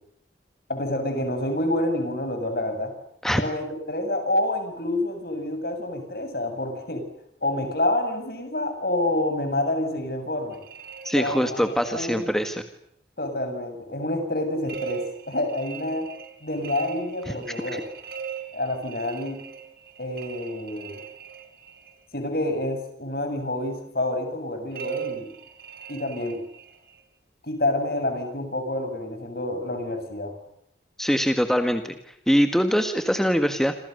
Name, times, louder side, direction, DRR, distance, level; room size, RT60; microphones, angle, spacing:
voice 1, 0.7-2.9 3.4-7.0 7.4-10.6 11.1-12.4 13.2-16.1 16.4-17.8 18.5-19.4 20.0-21.0 22.1-25.3 25.9-26.4 27.4-30.3, left 1 dB, 55° left, 7 dB, 7.5 m, -28 dB
sound 1, 10.5-12.1 14.6-22.0 24.7-27.0, right 7 dB, 55° right, 4.3 m, -39 dB
voice 2, 11.0-12.6 17.7-17.8 31.0-31.8 32.3-33.7, equal, ahead, 7 dB, 1.7 m, -22 dB
28.5 x 27.5 x 6.8 m, 0.73 s
head